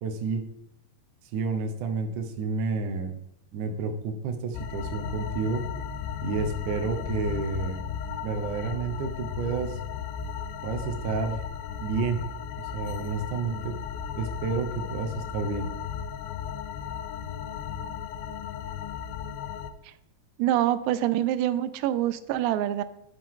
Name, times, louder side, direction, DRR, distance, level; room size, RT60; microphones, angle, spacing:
voice 1, 0.0-0.4 1.3-3.2 3.5-5.6 6.2-7.8 8.2-9.8 10.6-11.4 11.8-12.2 12.7-13.7 14.2-15.7, right 4 dB, 70° right, 4 dB, 2.0 m, -30 dB
sound 1, 4.5-19.7, left 8 dB, 90° left, 2.0 m, -35 dB
voice 2, 20.4-22.8, right 12 dB, 85° right, 13 dB, 2.7 m, -25 dB
12.0 x 5.4 x 3.8 m, 0.81 s
omnidirectional pair, 4.8 m